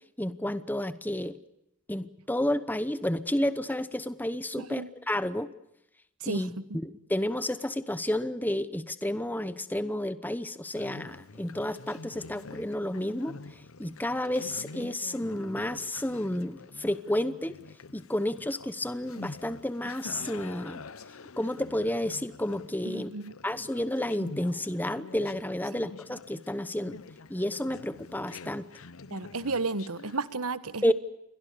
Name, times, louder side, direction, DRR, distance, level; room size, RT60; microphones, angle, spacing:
voice 1, 0.2-1.4 1.9-5.5 6.3-6.5 6.8-17.5 17.9-20.8 21.4-23.1 23.4-27.0 27.3-28.7 30.8-30.9, left 1 dB, 10° left, 0.9 m, -31 dB
voice 2, 4.6-4.9 6.2-6.6 22.8-23.3 29.1-30.9, right 3 dB, 85° right, 1.4 m, -33 dB
Conversation, 10.6-30.3, left 3 dB, 70° left, 1.0 m, -47 dB
29.0 x 22.5 x 6.8 m
head